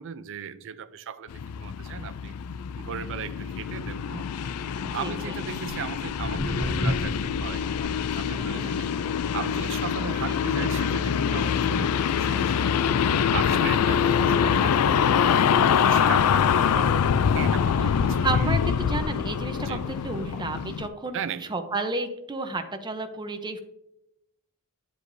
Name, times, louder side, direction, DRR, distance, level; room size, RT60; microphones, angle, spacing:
voice 1, 0.0-2.3 2.8-8.9 9.3-13.0 13.3-17.1 17.3-18.5 19.6-19.8 21.1-21.5, right 7 dB, 60° right, 0.5 m, -37 dB
English Countryside (Suffolk) - Tractor Drive-by - Fast, 1.3-20.9, left 7 dB, 90° left, 0.4 m, -25 dB
voice 2, 4.9-5.4 8.3-8.7 10.3-10.4 18.2-21.2 21.5-23.6, right 3 dB, 20° right, 0.7 m, -32 dB
Walk footsteps, 5.7-12.3 12.6-13.0 13.6-13.7 14.3-14.4 14.8-14.9 15.1-15.2 15.8-15.9 16.6-18.2 18.8-18.9 19.6-19.7 20.1-20.4 21.1-21.2, left 1 dB, 65° left, 1.7 m, -35 dB
9.7 x 7.8 x 2.6 m
head